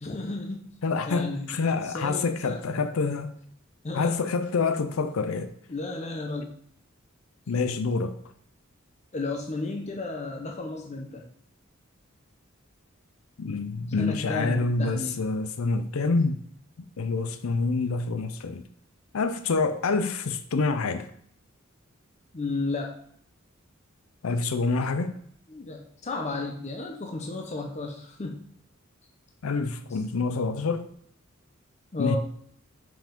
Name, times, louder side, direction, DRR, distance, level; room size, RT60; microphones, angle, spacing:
voice 1, 0.0-0.6 1.1-1.5 1.8-2.8 3.8-4.2 5.7-6.6 9.1-11.2 14.0-15.2 22.3-23.0 25.5-28.4 29.9-30.0 31.9-32.2, left 3 dB, 35° left, 0.7 m, -33 dB
voice 2, 0.8-3.3 3.9-5.5 7.5-8.1 13.4-16.4 17.0-18.6 19.1-21.1 24.2-25.1 29.4-30.9 32.0-32.2, left 4 dB, 85° left, 0.5 m, -27 dB
5.7 x 4.9 x 5.1 m
head